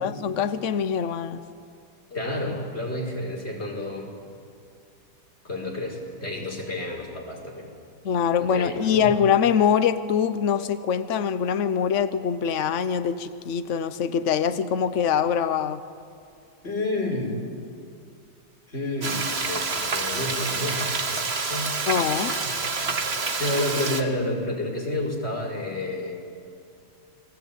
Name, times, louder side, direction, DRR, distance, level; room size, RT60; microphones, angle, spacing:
voice 1, 0.0-1.4 8.0-15.8 21.9-22.4, left 7 dB, 70° left, 0.7 m, -24 dB
voice 2, 2.1-4.1 5.4-7.7 8.4-9.1 16.6-17.4 18.7-21.7 22.4-23.1 23.4-26.2, left 1 dB, 30° left, 5.3 m, -30 dB
Frying (food), 19.0-24.0, right 4 dB, 35° right, 1.5 m, -28 dB
29.0 x 21.5 x 9.2 m
omnidirectional pair, 2.4 m